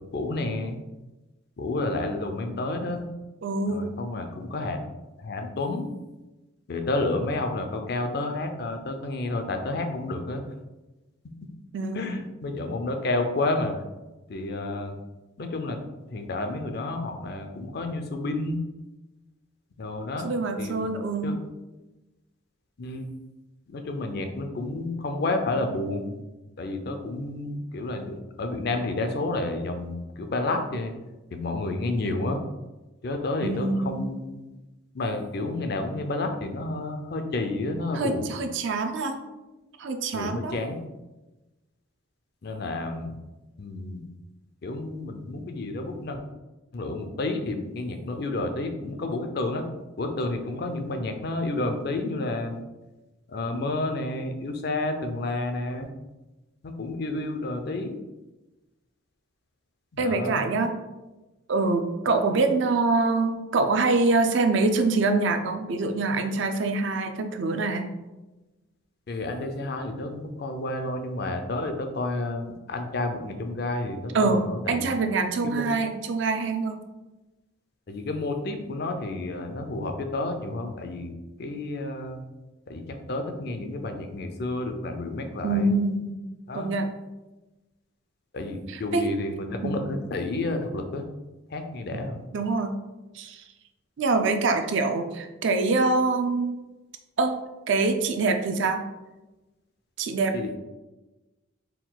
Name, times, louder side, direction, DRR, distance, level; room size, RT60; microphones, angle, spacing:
voice 1, 0.1-0.8 1.6-3.1 3.7-4.8 5.2-5.9 6.7-10.4 11.9-13.7 14.3-15.0 15.4-15.8 16.1-18.6 19.8-20.3 20.6-20.8 21.2-21.4 22.8-23.1 23.7-26.2 26.6-30.9 31.3-32.4 33.0-34.4 34.9-38.3 40.1-40.8 42.4-43.2 43.6-44.0 44.6-46.2 46.7-49.6 50.0-52.6 53.3-55.9 56.6-57.9 59.9-60.4 69.1-74.9 75.4-75.6 77.9-81.1 81.4-82.2 82.7-85.7 86.5-86.7 88.3-91.1 91.5-92.2 100.3-100.6, left 2 dB, 50° left, 5 dB, 0.4 m, -30 dB
voice 2, 3.4-4.0 11.7-12.2 20.2-21.4 33.4-34.1 37.9-39.2 39.8-40.5 60.0-60.7 61.5-67.9 74.1-76.8 85.4-86.1 86.5-86.9 88.7-89.1 89.6-89.9 91.9-92.0 92.3-92.8 93.1-93.4 94.0-96.5 97.2-97.4 97.7-98.8 100.0-100.6, right 3 dB, 65° right, 6 dB, 0.4 m, -25 dB
4.4 x 2.3 x 3.8 m, 1.1 s
head